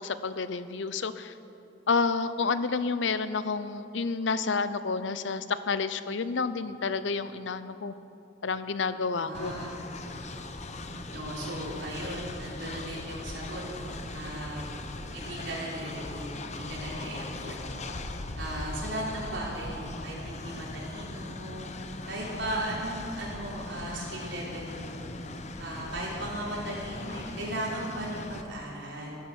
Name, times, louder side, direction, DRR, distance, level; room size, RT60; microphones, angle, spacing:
voice 1, 0.0-1.3 1.9-7.9 8.4-9.5, left 4 dB, 75° left, 13 dB, 0.7 m, -29 dB
voice 2, 9.1-9.7 10.0-10.1 11.1-14.7 15.1-17.6 18.4-21.7 22.1-24.9 25.6-29.2, right 1 dB, 70° right, -4 dB, 4.5 m, -37 dB
Train, 9.3-28.4, left 2 dB, 35° left, 0.9 m, -39 dB
15.0 x 12.0 x 7.2 m, 2.7 s
head